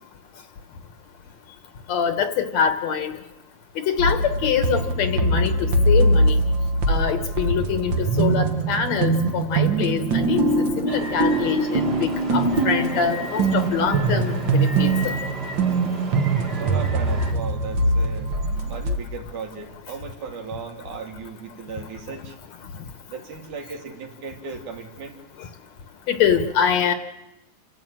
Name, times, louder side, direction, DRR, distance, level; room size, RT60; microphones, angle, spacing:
voice 1, 1.9-3.1 3.8-6.4 6.9-15.1 26.1-26.9, left 7 dB, 65° left, 8 dB, 2.2 m, -24 dB
sound 1, 4.0-19.0, right 2 dB, 50° right, 1.5 m, -22 dB
sound 2, 10.9-17.3, right 1 dB, 25° right, 1.6 m, -35 dB
voice 2, 16.5-18.3 18.7-22.4 23.1-25.2, right 5 dB, 70° right, 2 dB, 3.7 m, -36 dB
29.0 x 12.5 x 8.9 m, 0.97 s
omnidirectional pair, 3.7 m